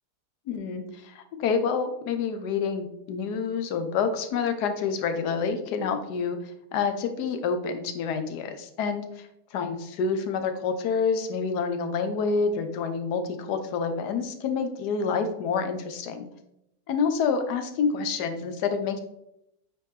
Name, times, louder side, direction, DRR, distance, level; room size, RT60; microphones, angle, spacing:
voice 1, 0.5-16.3 16.9-19.0, left 5 dB, 80° left, 7 dB, 1.3 m, -28 dB
8.4 x 3.5 x 3.1 m, 0.82 s
omnidirectional pair, 1.7 m